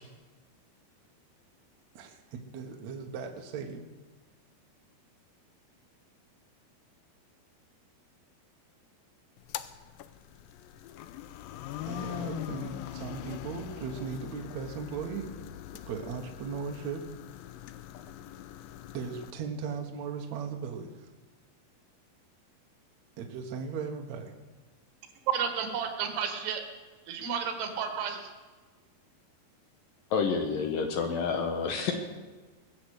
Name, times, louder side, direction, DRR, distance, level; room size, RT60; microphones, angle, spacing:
voice 1, 1.9-3.8 11.9-15.3 15.9-17.0 18.9-21.1 23.2-24.3, right 5 dB, 60° right, 2 dB, 2.0 m, -37 dB
sound 1, 9.4-19.3, left 12 dB, 80° left, 2.1 m, -42 dB
voice 2, 25.3-26.6 27.1-28.3, right 7 dB, 85° right, 5 dB, 3.8 m, -31 dB
voice 3, 30.1-32.0, left 5 dB, 65° left, 4 dB, 2.5 m, -29 dB
21.0 x 7.5 x 8.2 m, 1.3 s
omnidirectional pair, 4.7 m